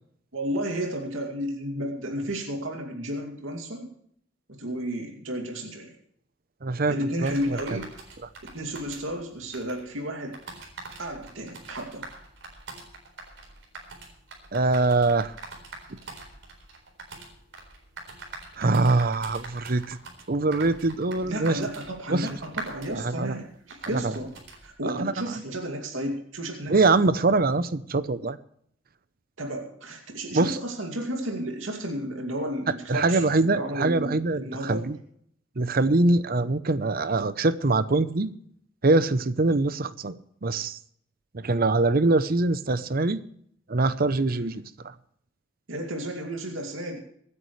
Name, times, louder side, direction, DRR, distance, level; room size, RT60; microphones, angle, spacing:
voice 1, 0.3-3.9 4.5-5.9 6.9-7.9 8.4-10.4 11.0-12.1 21.2-24.3 24.6-26.8 29.4-34.9 44.3-44.6 45.7-47.0, equal, 85° right, 2 dB, 2.5 m, -32 dB
voice 2, 6.6-7.6 14.5-15.3 18.6-20.0 20.3-21.6 22.1-22.4 22.9-23.3 23.9-24.2 24.9-25.4 26.7-28.4 30.3-30.6 32.9-35.0 35.6-38.3 38.8-40.1 40.4-40.8 41.3-43.2 43.7-44.6, right 3 dB, 50° right, 14 dB, 0.7 m, -23 dB
sound 1, 7.2-24.7, right 3 dB, 65° right, 4.1 m, -44 dB
24.5 x 9.9 x 3.2 m, 0.67 s
head